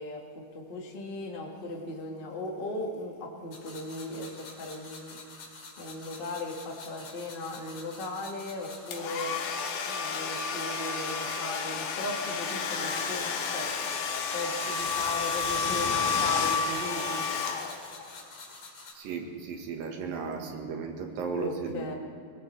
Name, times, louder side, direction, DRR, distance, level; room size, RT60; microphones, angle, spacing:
voice 1, 0.0-5.2 5.8-9.4 9.8-14.1 14.3-17.3 21.4-21.9, left 2 dB, 30° left, 0 dB, 1.0 m, -37 dB
sound 1, 3.5-18.9, left 3 dB, 50° left, 3.3 m, -47 dB
Domestic sounds home sounds, 8.9-18.1, left 5 dB, 80° left, 2.9 m, -31 dB
voice 2, 18.9-22.0, right 5 dB, 75° right, 3 dB, 3.2 m, -35 dB
21.5 x 19.0 x 3.3 m, 2.4 s
omnidirectional pair, 4.1 m